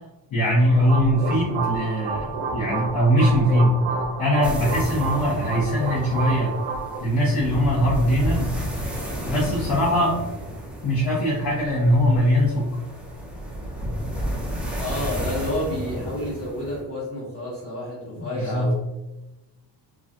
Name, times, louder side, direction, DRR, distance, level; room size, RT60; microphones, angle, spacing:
voice 1, 0.3-3.8 4.2-6.6 7.0-8.6 9.3-10.2 10.8-12.7 18.2-18.8, equal, 60° left, -8 dB, 1.0 m, -21 dB
sound 1, 0.5-7.0, right 4 dB, 85° right, 0.7 m, -30 dB
sound 2, 4.4-16.8, equal, 5° right, 0.3 m, -32 dB
voice 2, 14.8-18.8, left 1 dB, 30° left, -8 dB, 1.2 m, -30 dB
3.1 x 2.3 x 2.5 m, 1.0 s
cardioid pair, 140°, 42 cm